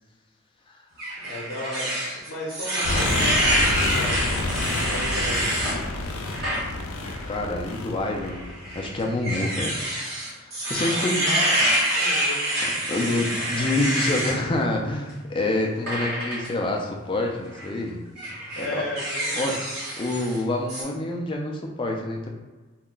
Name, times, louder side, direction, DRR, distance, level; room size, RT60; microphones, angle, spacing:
sound 1, 1.0-5.8 6.3-6.6 7.0-7.2 8.2-14.4 15.9-16.5 17.4-17.7 18.2-20.4 20.7-20.8, right 1 dB, 50° right, 1.2 m, -26 dB
voice 1, 1.2-1.9 2.3-4.4 4.9-5.5 11.2-12.4 12.9-13.1 18.6-19.6, left 1 dB, 55° left, -5 dB, 0.7 m, -35 dB
sound 2, 2.8-8.9, left 2 dB, 90° left, 0.4 m, -29 dB
voice 2, 7.3-9.8 10.4-11.3 12.9-18.1 18.6-18.9 19.4-19.6 20.0-22.3, left 2 dB, 25° left, 1 dB, 0.3 m, -27 dB
2.4 x 2.1 x 3.7 m, 1.2 s
head